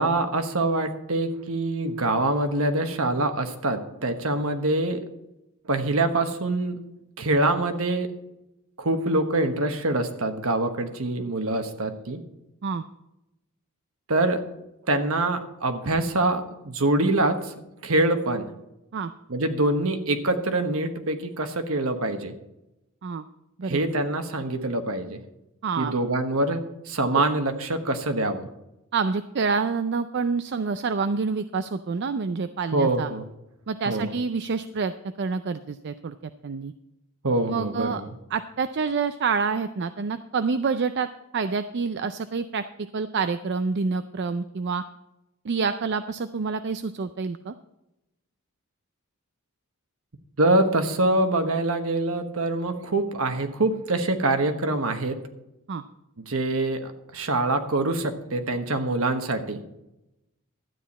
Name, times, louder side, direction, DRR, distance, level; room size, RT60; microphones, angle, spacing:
voice 1, 0.0-5.0 5.7-6.8 7.2-8.1 8.8-12.2 14.1-14.4 14.9-17.5 17.8-18.5 19.3-22.3 23.6-25.2 25.8-28.4 32.7-33.2 33.9-34.1 37.2-38.1 50.4-55.2 56.2-59.6, right 2 dB, 70° right, 7 dB, 1.2 m, -25 dB
voice 2, 25.6-25.9 27.1-27.2 28.9-33.1 33.7-36.7 37.5-38.0 38.3-42.6 42.9-44.8 45.4-47.5 55.7-55.8, right 5 dB, 50° right, 10 dB, 0.4 m, -27 dB
12.5 x 9.2 x 4.2 m, 0.91 s
head